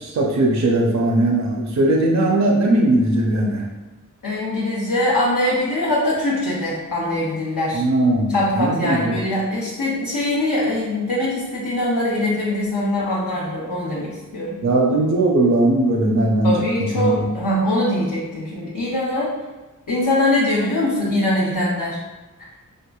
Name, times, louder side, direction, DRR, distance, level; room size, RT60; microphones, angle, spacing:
voice 1, 0.0-3.7 7.7-9.1 14.6-16.5 16.8-17.3, right 2 dB, 55° right, -1 dB, 0.5 m, -19 dB
voice 2, 4.2-7.8 8.3-14.6 16.4-19.3 19.9-22.0, left 1 dB, 75° left, -9 dB, 0.8 m, -22 dB
4.5 x 2.5 x 2.2 m, 1.2 s
wide cardioid pair, 75°, 33 cm